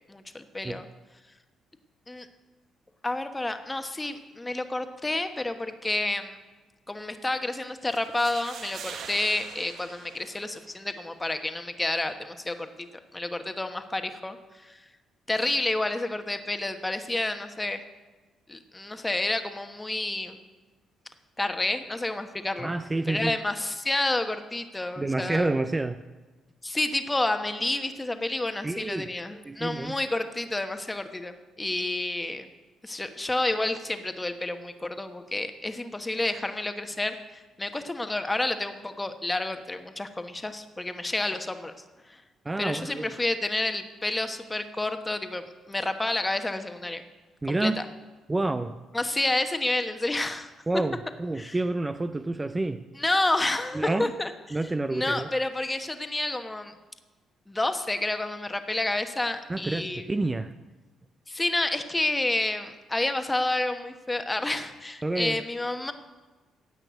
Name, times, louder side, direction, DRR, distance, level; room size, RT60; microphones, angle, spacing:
voice 1, 0.1-0.9 2.1-2.3 3.0-6.4 6.9-12.7 13.1-14.8 15.3-17.8 18.5-20.4 21.4-22.7 23.1-25.5 26.6-32.5 32.8-41.7 42.1-42.2 42.6-47.0 47.5-47.8 48.9-50.5 51.4-51.6 53.0-54.6 54.9-56.7 57.5-60.0 61.3-65.9, left 2 dB, 15° left, 7 dB, 1.2 m, -30 dB
sound 1, 7.9-10.9, right 7 dB, 70° right, 1.1 m, -43 dB
voice 2, 22.6-23.4 25.0-26.0 28.6-29.1 29.4-30.0 42.4-43.1 47.4-47.8 48.3-48.8 50.7-52.8 53.7-54.1 54.5-55.3 59.5-60.5 65.0-65.5, right 2 dB, 20° right, 10 dB, 0.5 m, -28 dB
16.5 x 5.9 x 9.1 m, 1.2 s
cardioid pair, 90°, 0 cm